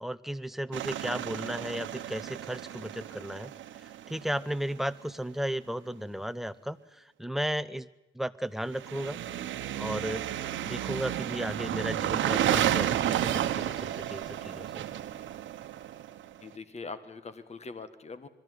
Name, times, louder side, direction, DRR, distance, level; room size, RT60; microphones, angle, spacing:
voice 1, 0.0-3.5 3.8-7.9 8.1-9.2 9.7-10.2 10.6-14.8, equal, ahead, 13 dB, 0.7 m, -35 dB
sound 1, 0.7-4.6 8.7-16.4, right 11 dB, 70° right, 1.1 m, -32 dB
voice 2, 16.4-18.3, left 4 dB, 35° left, 12 dB, 1.6 m, -42 dB
22.0 x 13.5 x 9.4 m, 1.0 s
cardioid pair, 90°, 20 cm